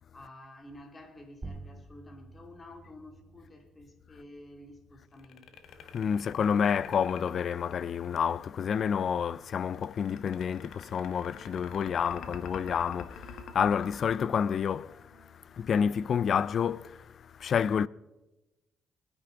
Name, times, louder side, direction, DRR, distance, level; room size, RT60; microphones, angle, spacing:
voice 1, 0.1-5.6, left 1 dB, 30° left, 2.8 m, -50 dB
sound 1, 1.4-6.5, right 3 dB, 25° right, 1.5 m, -50 dB
sound 2, 5.1-8.3 9.7-15.2, left 7 dB, 80° left, 1.3 m, -46 dB
voice 2, 5.8-17.9, left 7 dB, 55° left, 0.4 m, -29 dB
Wind instrument woodwind instrument, 10.6-16.4, right 5 dB, 80° right, 2.5 m, -61 dB
21.0 x 9.8 x 4.0 m
cardioid pair, 90°, 0 cm